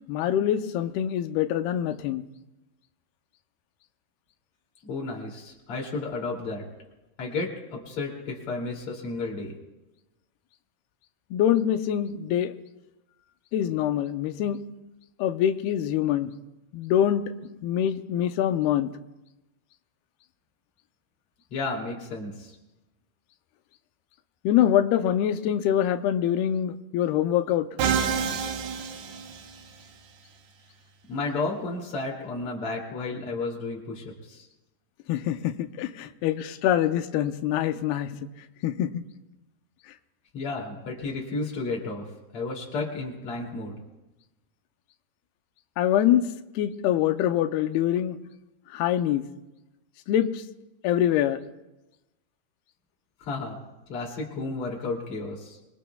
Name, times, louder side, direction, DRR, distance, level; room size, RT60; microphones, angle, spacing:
voice 1, 0.1-2.2 11.3-12.5 13.5-14.6 15.2-16.3 16.7-17.3 17.6-18.9 24.4-27.7 35.1-38.2 38.6-39.0 45.8-46.3 46.6-48.2 48.7-49.3 50.1-50.4 50.8-51.4, left 11 dB, 85° left, 9 dB, 2.7 m, -24 dB
voice 2, 4.8-6.7 7.2-9.5 21.5-22.6 31.1-34.5 40.3-42.0 42.3-43.8 53.2-53.6 53.9-55.6, left 3 dB, 40° left, -2 dB, 3.3 m, -32 dB
Musical instrument, 27.8-29.9, right 7 dB, 85° right, 3.1 m, -28 dB
25.5 x 22.0 x 2.3 m, 1.0 s
omnidirectional pair, 4.4 m